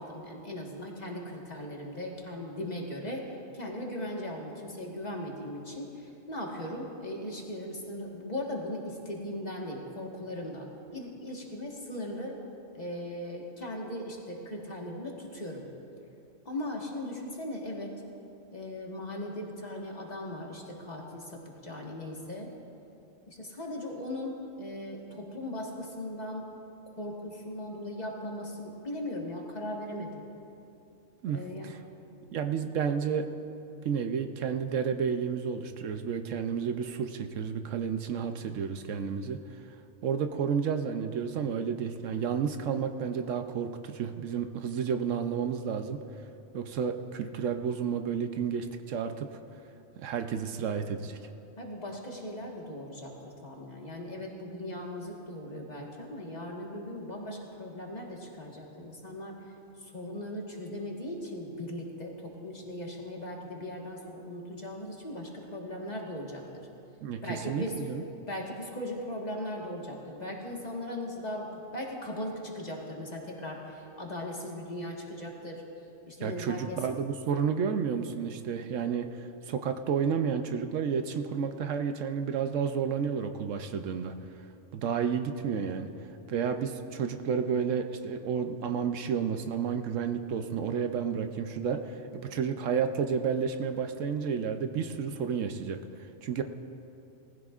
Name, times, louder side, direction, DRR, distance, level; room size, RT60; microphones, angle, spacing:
voice 1, 0.0-12.4 12.7-15.7 16.4-17.9 18.5-22.5 23.3-26.5 27.0-30.2 31.3-31.7 51.6-59.4 59.8-66.7 67.2-67.8 68.3-75.6 76.1-76.8, left 1 dB, 35° left, -1 dB, 1.5 m, -38 dB
voice 2, 31.2-31.8 32.3-33.3 33.8-39.4 40.0-46.0 46.5-49.3 50.0-51.2 67.0-68.0 76.2-84.1 84.7-85.9 86.3-95.8 96.2-96.4, right 7 dB, 75° right, 7 dB, 1.0 m, -31 dB
19.5 x 15.0 x 2.4 m, 2.7 s
omnidirectional pair, 1.4 m